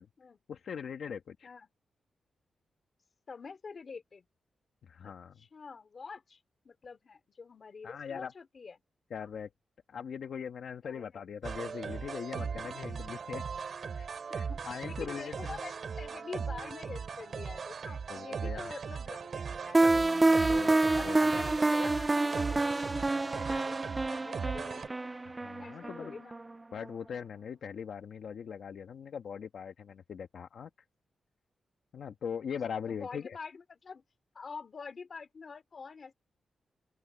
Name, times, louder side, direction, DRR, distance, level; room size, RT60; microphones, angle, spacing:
voice 1, 0.5-1.5 4.8-5.4 7.8-8.3 9.1-9.5 9.9-13.4 14.0-15.6 18.1-18.8 20.5-21.4 25.4-26.2 26.7-30.7 31.9-33.4, left 7 dB, 60° left, 1.4 m, -41 dB
voice 2, 3.3-4.3 5.0-6.4 6.6-8.8 9.2-9.3 10.8-11.2 12.3-12.7 14.3-20.6 20.9-25.1 25.6-26.3 32.7-34.0 34.3-36.1, left 5 dB, 35° left, 2.9 m, -47 dB
sound 1, 11.4-24.9, right 6 dB, 45° right, 2.6 m, -39 dB
sound 2, 19.7-26.5, right 2 dB, 15° right, 0.4 m, -28 dB
open air
wide cardioid pair, 175°, 0 cm